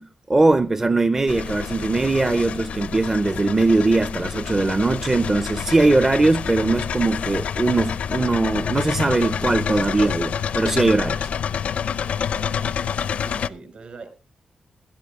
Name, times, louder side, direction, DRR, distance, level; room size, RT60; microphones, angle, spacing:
voice 1, 0.0-11.3, right 3 dB, 20° right, 0.6 m, -20 dB
sound 1, 1.3-13.5, left 7 dB, 80° left, 0.6 m, -28 dB
voice 2, 12.3-12.8 13.2-14.1, right 4 dB, 55° right, 5.3 m, -42 dB
17.5 x 12.5 x 3.6 m
wide cardioid pair, 135°, 2 cm